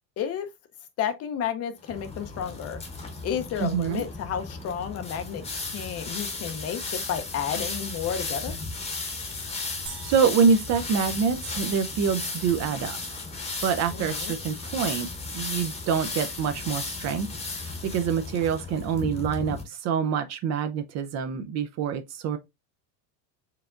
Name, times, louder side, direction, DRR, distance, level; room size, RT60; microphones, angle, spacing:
voice 1, 0.2-0.5 1.0-2.8 3.2-8.6 13.9-14.3, left 8 dB, 30° left, 0.6 m, -31 dB
sound 1, 1.8-19.6, left 3 dB, 15° left, 0.9 m, -35 dB
voice 2, 3.6-4.0 10.0-13.2 13.6-15.1 15.3-17.3 17.8-22.4, right 6 dB, 35° right, 0.5 m, -26 dB
sound 2, 9.9-12.3, right 6 dB, 55° right, 2.1 m, -47 dB
4.7 x 3.3 x 2.4 m
supercardioid pair, 120°, 48 cm